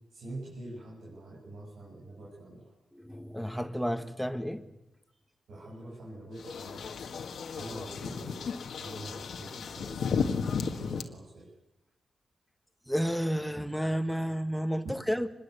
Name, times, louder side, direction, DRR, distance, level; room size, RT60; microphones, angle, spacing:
voice 1, 0.1-2.7 5.5-7.2 7.5-8.4 8.8-11.5, right 1 dB, 85° right, -4 dB, 7.8 m, -45 dB
voice 2, 2.9-4.7 12.9-15.3, equal, ahead, 9 dB, 1.7 m, -31 dB
sound 1, 6.4-11.0, left 6 dB, 80° left, 1.8 m, -34 dB
25.5 x 21.0 x 8.3 m, 0.93 s
cardioid pair, 90°, 0 cm